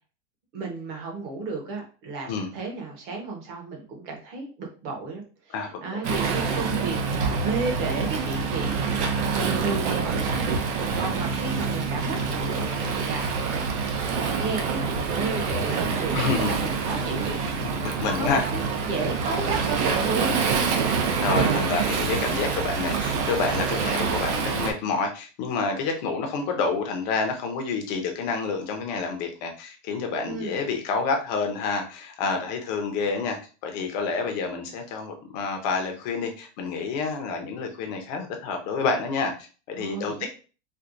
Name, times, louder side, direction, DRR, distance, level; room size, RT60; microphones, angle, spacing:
voice 1, 0.5-8.9 9.3-17.4 18.1-20.4 30.2-30.6 39.7-40.3, right 3 dB, 30° right, 1 dB, 0.9 m, -33 dB
voice 2, 5.5-5.8 16.1-16.7 17.6-18.5 21.2-40.3, left 4 dB, 35° left, 4 dB, 0.6 m, -28 dB
Waves surf, 6.0-24.7, right 5 dB, 65° right, 0.8 m, -26 dB
4.4 x 2.2 x 2.5 m, 0.36 s
supercardioid pair, 175°, 37 cm